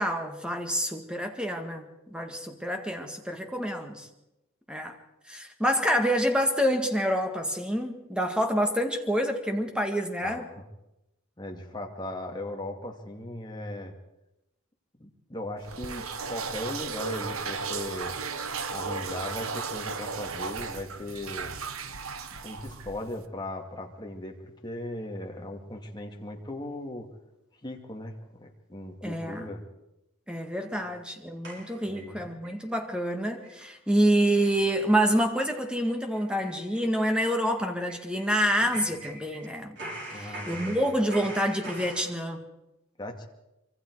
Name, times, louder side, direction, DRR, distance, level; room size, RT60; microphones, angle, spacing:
voice 1, 0.0-4.1 4.7-5.0 5.3-10.5 29.0-29.5 30.3-39.8 40.1-42.4, equal, 5° right, 4 dB, 1.9 m, -27 dB
voice 2, 10.2-10.6 11.4-13.9 15.0-18.1 18.7-21.5 22.3-27.1 27.6-29.6 30.7-30.9 31.8-32.3 40.1-40.8 43.0-43.3, left 1 dB, 20° left, 2 dB, 2.4 m, -38 dB
sound 1, 15.6-23.3, right 5 dB, 70° right, 1.2 m, -35 dB
sound 2, 31.4-32.6 33.0-33.1 33.4-33.6 33.9-34.0 34.4-34.6 34.9-35.1 35.3-35.5 35.8-39.5 39.8-42.1, right 2 dB, 55° right, 6.0 m, -43 dB
25.0 x 25.0 x 4.8 m, 0.92 s
head